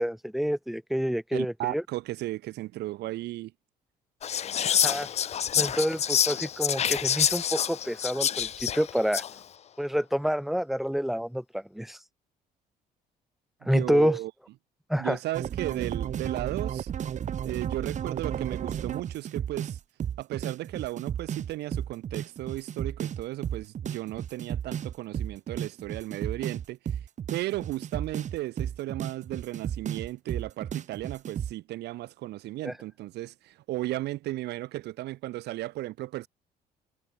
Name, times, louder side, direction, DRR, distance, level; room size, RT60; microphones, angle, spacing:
voice 1, 0.0-1.8 4.6-5.1 5.6-9.2 9.8-12.0 13.6-14.2 14.9-15.2 32.6-32.7, equal, ahead, 1.8 m, -28 dB
voice 2, 1.3-3.5 13.7-14.3 15.0-16.9 17.4-19.8 20.2-26.8 27.3-36.3, right 16 dB, 80° right, 6.6 m, -35 dB
Whispering, 4.2-9.4, left 9 dB, 40° left, 0.7 m, -27 dB
sound 1, 15.3-31.5, right 9 dB, 45° right, 1.4 m, -33 dB
cardioid pair, 110°, 17 cm